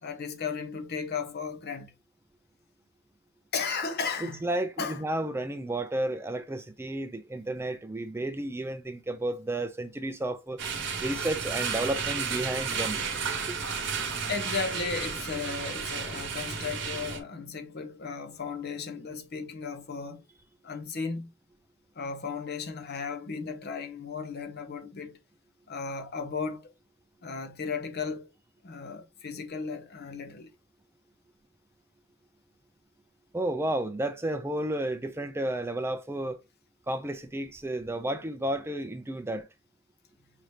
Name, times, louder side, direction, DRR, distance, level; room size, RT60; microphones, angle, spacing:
voice 1, 0.0-1.9 3.5-4.4 4.8-5.0 14.3-20.2 20.6-21.3 21.9-25.2 25.7-26.7 27.2-28.3 28.6-30.5, left 5 dB, 50° left, 0.7 m, -35 dB
voice 2, 4.2-10.6 11.0-13.0 13.5-13.6 33.3-36.4 36.9-39.5, right 1 dB, 10° right, 0.4 m, -32 dB
sound 1, 10.6-17.2, right 5 dB, 60° right, 1.1 m, -32 dB
5.0 x 2.7 x 3.1 m
head